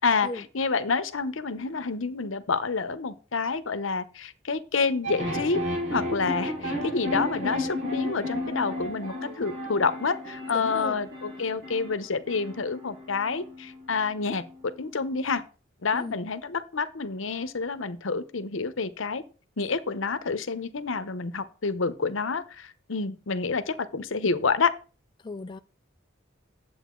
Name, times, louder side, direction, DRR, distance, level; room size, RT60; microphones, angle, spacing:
voice 1, 0.0-5.6 5.9-15.4 15.8-19.2 19.6-24.7, left 4 dB, 75° left, 0.8 m, -28 dB
sound 1, 5.0-15.3, left 1 dB, 65° right, 5.6 m, -34 dB
voice 2, 10.5-11.0 15.9-16.2 25.2-25.6, left 2 dB, 25° left, 0.3 m, -36 dB
10.0 x 7.8 x 3.8 m
head